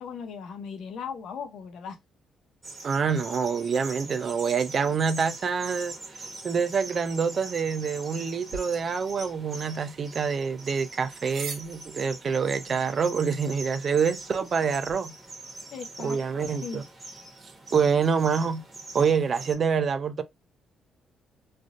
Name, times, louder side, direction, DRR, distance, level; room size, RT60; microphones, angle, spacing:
voice 1, 0.0-2.0 15.7-16.8, left 6 dB, 75° left, 0.7 m, -38 dB
sound 1, 2.6-19.5, right 2 dB, 30° right, 1.3 m, -43 dB
voice 2, 2.8-5.9 6.4-15.1 16.0-16.8 17.7-18.6 18.9-20.2, right 6 dB, 50° right, 0.5 m, -26 dB
sound 2, 8.5-15.0, right 4 dB, 75° right, 1.2 m, -46 dB
3.2 x 2.6 x 2.5 m
cardioid pair, 90°, 0 cm